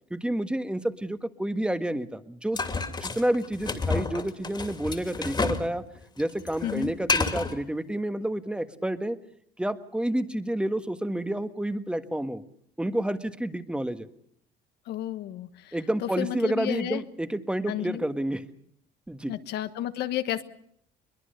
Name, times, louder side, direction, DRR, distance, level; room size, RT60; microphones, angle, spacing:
voice 1, 0.1-2.6 2.9-5.8 6.2-9.2 9.6-12.4 12.8-14.1 15.7-18.4 19.1-19.3, right 1 dB, 5° right, 10 dB, 1.5 m, -29 dB
sound 1, 2.6-5.7 6.0-7.6, left 4 dB, 25° left, 2.6 m, -29 dB
voice 2, 6.6-6.9 14.9-15.7 16.0-17.0 17.7-18.0 19.3-20.4, left 12 dB, 75° left, 11 dB, 1.4 m, -31 dB
22.5 x 21.5 x 6.7 m, 0.68 s
cardioid pair, 110°, 17 cm